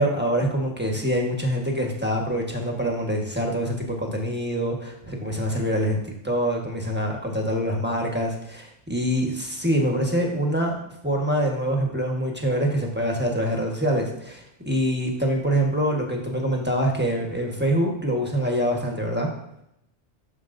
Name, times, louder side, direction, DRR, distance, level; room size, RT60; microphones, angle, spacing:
voice 1, 0.0-10.7 11.0-19.3, equal, 10° right, 0 dB, 1.3 m, -25 dB
12.0 x 7.0 x 2.6 m, 0.80 s
omnidirectional pair, 1.2 m